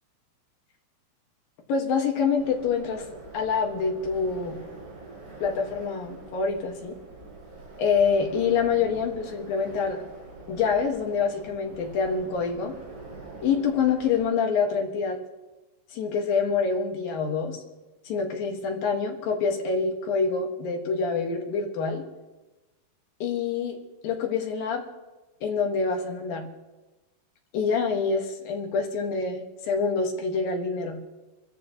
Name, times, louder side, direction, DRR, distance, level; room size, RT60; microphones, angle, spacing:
voice 1, 1.7-3.1 3.3-4.6 5.4-7.0 7.8-10.0 10.5-12.7 13.4-15.2 15.9-17.6 18.1-22.0 23.2-23.8 24.0-24.8 25.4-26.5 27.5-31.0, left 5 dB, 60° left, 2 dB, 2.9 m, -26 dB
sound 1, 2.4-14.2, right 3 dB, 40° right, 6.1 m, -44 dB
26.5 x 14.0 x 3.0 m, 1.1 s
omnidirectional pair, 5.3 m